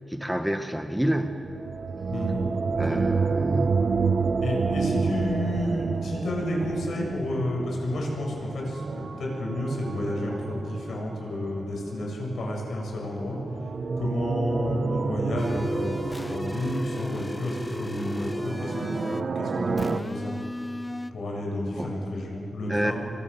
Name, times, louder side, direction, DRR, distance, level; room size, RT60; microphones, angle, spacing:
voice 1, 0.1-1.5 2.8-3.7 21.7-22.0 22.7-22.9, equal, 5° right, 6 dB, 1.2 m, -28 dB
sound 1, 1.3-12.0 13.2-20.0, right 4 dB, 50° right, 0.9 m, -29 dB
voice 2, 2.1-3.0 4.4-13.4 14.0-16.0 16.3-20.3 21.1-22.9, left 1 dB, 70° left, -1 dB, 7.3 m, -31 dB
sound 2, 15.4-19.3 19.8-21.1, left 2 dB, 15° left, 0.6 m, -35 dB
28.0 x 24.0 x 7.1 m, 2.8 s
wide cardioid pair, 130°, 0 cm